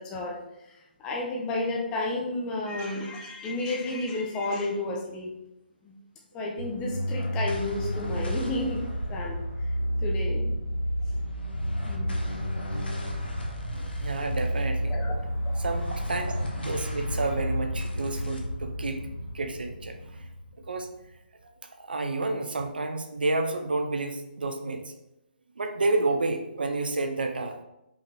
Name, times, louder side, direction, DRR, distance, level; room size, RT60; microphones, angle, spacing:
voice 1, 0.0-5.4 5.8-5.9 6.3-9.4 10.0-10.5 11.8-12.3 14.9-15.1, left 2 dB, 15° left, 0 dB, 0.5 m, -32 dB
sound 1, 6.6-21.2, equal, 70° left, 0.8 m, -31 dB
voice 2, 13.7-14.9 15.6-19.1 19.3-20.3 20.7-20.9 21.8-24.9 25.6-27.6, right 2 dB, 60° right, 5 dB, 0.5 m, -30 dB
5.2 x 2.8 x 2.2 m, 0.88 s
figure-of-eight pair, 140°, 6 cm